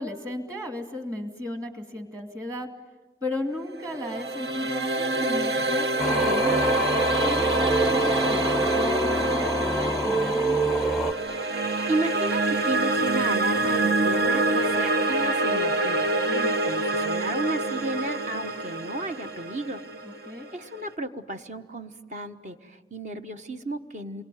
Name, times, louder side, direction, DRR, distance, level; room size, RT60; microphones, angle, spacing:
voice 1, 0.0-2.7 3.2-6.8 7.2-10.8 16.2-16.5 20.0-20.5, left 1 dB, 20° right, 5 dB, 2.4 m, -35 dB
sound 1, 3.7-20.8, right 2 dB, 65° right, 1.0 m, -26 dB
Singing, 6.0-11.1, right 1 dB, ahead, 0.9 m, -26 dB
voice 2, 11.9-16.1 16.6-19.8 20.5-24.2, right 2 dB, 45° right, 7 dB, 1.2 m, -33 dB
28.0 x 23.0 x 9.3 m, 1.3 s
head